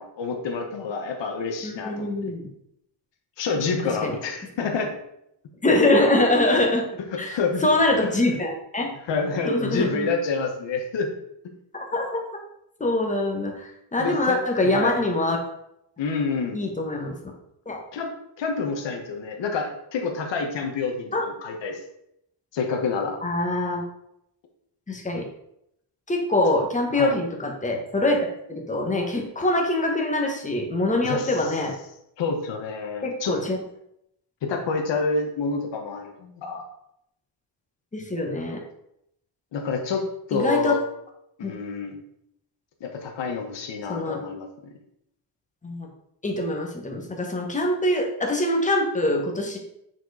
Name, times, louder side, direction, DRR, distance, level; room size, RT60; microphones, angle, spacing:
voice 1, 0.0-2.3 3.4-5.0 5.6-5.7 7.1-7.7 8.0-8.4 9.0-11.1 14.0-15.0 16.0-16.6 17.9-21.8 22.5-23.2 26.9-27.2 31.0-31.5 32.2-33.3 34.4-36.6 39.5-40.0 40.3-40.8 41.4-42.0 42.8-44.7, left 4 dB, 65° left, 2 dB, 1.3 m, -28 dB
voice 2, 1.6-2.5 4.0-4.1 5.6-6.8 7.2-8.9 9.4-10.1 11.7-12.2 12.8-15.4 16.5-17.1 17.7-17.8 21.1-21.2 23.2-23.8 24.9-25.2 26.1-28.2 28.5-31.7 33.0-33.6 37.9-38.6 40.3-40.7 41.4-41.5 43.9-44.2 45.6-45.9 46.2-49.6, left 1 dB, 15° left, 1 dB, 1.3 m, -24 dB
9.0 x 4.6 x 4.8 m, 0.78 s
wide cardioid pair, 180°, 46 cm